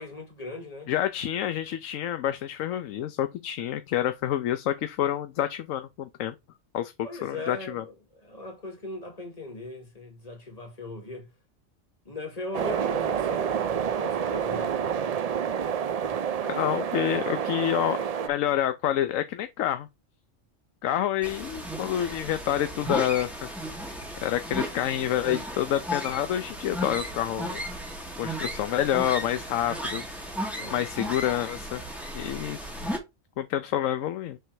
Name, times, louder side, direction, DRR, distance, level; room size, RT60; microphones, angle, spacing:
voice 1, 0.0-0.9 7.0-11.3 12.1-15.0 30.5-30.9, left 2 dB, 30° left, 1.8 m, -39 dB
voice 2, 0.9-6.3 6.7-6.9 7.2-7.8 16.5-18.0 18.2-19.9 20.8-23.4 24.2-27.6 28.2-30.2 30.7-31.8 32.1-32.7 33.4-34.4, left 11 dB, 90° left, 1.0 m, -28 dB
sound 1, 12.5-18.3, right 8 dB, 80° right, 0.3 m, -28 dB
sound 2, 21.2-33.0, equal, ahead, 1.7 m, -35 dB
6.8 x 3.3 x 4.6 m
omnidirectional pair, 1.3 m